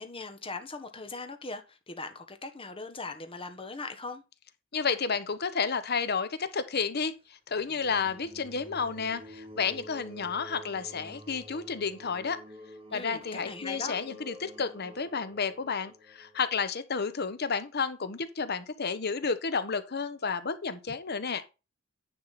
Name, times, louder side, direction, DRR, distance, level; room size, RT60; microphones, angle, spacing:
voice 1, 0.0-4.2 12.9-13.9, left 3 dB, 25° left, 1.3 m, -40 dB
voice 2, 4.7-7.1 7.5-12.4 12.9-21.4, left 5 dB, 50° left, 1.0 m, -31 dB
sound 1, 7.5-16.6, right 1 dB, 30° right, 1.9 m, -49 dB
10.0 x 5.6 x 4.2 m
head